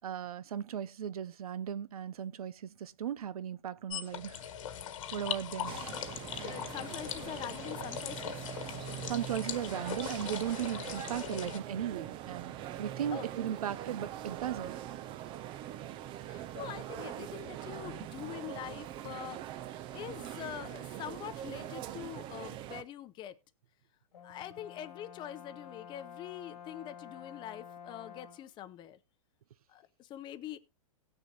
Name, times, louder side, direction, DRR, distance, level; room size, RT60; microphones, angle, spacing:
voice 1, 0.0-4.5 5.1-5.7 9.0-12.5 12.8-14.8, right 9 dB, 80° right, 0.7 m, -37 dB
sound 1, 3.9-11.6, left 10 dB, 60° left, 1.4 m, -40 dB
sound 2, 5.7-22.8, right 12 dB, 25° right, 0.6 m, -42 dB
voice 2, 6.4-8.3 13.1-13.3 16.2-19.5 19.9-23.4 24.2-29.0 29.7-30.6, left 11 dB, 25° left, 0.7 m, -44 dB
Brass instrument, 24.1-28.5, left 8 dB, 85° left, 1.9 m, -50 dB
18.0 x 6.6 x 2.9 m
hypercardioid pair, 140°, 19 cm